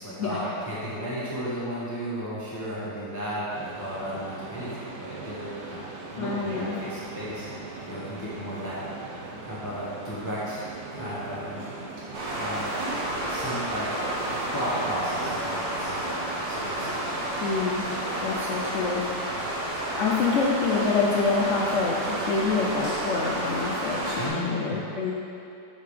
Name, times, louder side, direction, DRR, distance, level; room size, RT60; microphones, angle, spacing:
voice 1, 0.0-4.7 5.0-8.9 9.4-11.7 12.0-12.7 13.2-14.0 14.3-17.4 24.2-24.8, equal, 15° left, -9 dB, 0.8 m, -34 dB
sound 1, 3.5-15.0, right 3 dB, 75° right, 1.4 m, -40 dB
voice 2, 6.2-6.8 17.4-17.9 18.2-19.0 19.5-25.1, left 4 dB, 80° left, -3 dB, 0.6 m, -27 dB
sound 2, 12.1-24.3, right 1 dB, 60° right, 1.7 m, -30 dB
7.5 x 3.7 x 4.9 m, 2.7 s
omnidirectional pair, 1.9 m